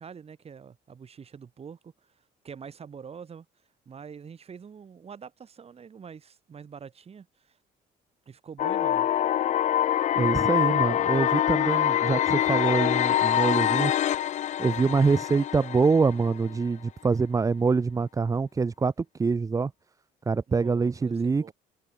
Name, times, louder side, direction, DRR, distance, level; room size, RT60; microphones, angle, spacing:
voice 1, 0.0-3.5 3.9-7.6 8.3-9.1 20.5-21.5, right 6 dB, 35° right, 4.4 m, -45 dB
sound 1, 8.6-16.6, left 11 dB, 45° left, 0.5 m, -25 dB
voice 2, 10.2-13.9 14.6-18.9 19.2-19.7 20.3-21.5, right 4 dB, 20° right, 0.7 m, -25 dB
cardioid pair, 110°, 17 cm